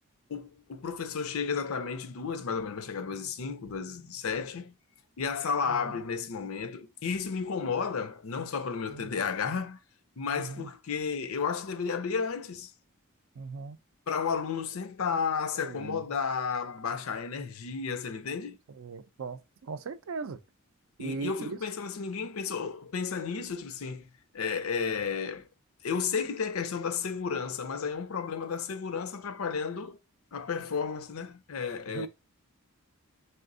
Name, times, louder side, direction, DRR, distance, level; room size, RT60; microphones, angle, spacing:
voice 1, 0.3-4.7 5.2-9.8 10.2-12.7 14.1-18.6 21.0-24.1 24.3-25.5 25.8-30.0 30.3-32.1, left 6 dB, 75° left, 0.6 m, -32 dB
voice 2, 5.7-6.0 8.9-9.2 10.3-10.7 13.4-13.8 15.5-16.2 18.7-20.4 21.0-21.6 31.9-32.1, right 4 dB, 65° right, 0.4 m, -39 dB
4.2 x 3.3 x 2.6 m
head